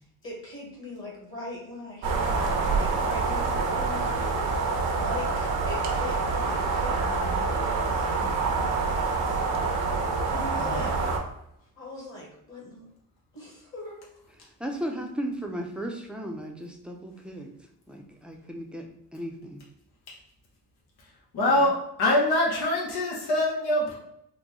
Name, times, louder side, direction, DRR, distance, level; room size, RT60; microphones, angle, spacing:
voice 1, 0.2-9.1 10.3-10.9 11.7-12.9 13.3-14.0, left 2 dB, 35° left, -3 dB, 1.2 m, -40 dB
sound 1, 2.0-11.2, right 4 dB, 80° right, 0.8 m, -26 dB
voice 2, 14.6-17.5 17.9-18.9 19.1-19.6 21.6-21.7, right 1 dB, 5° right, 2 dB, 0.5 m, -35 dB
voice 3, 21.3-24.0, left 1 dB, 90° left, -3 dB, 0.9 m, -24 dB
3.8 x 2.2 x 3.0 m, 0.78 s
cardioid pair, 100°, 37 cm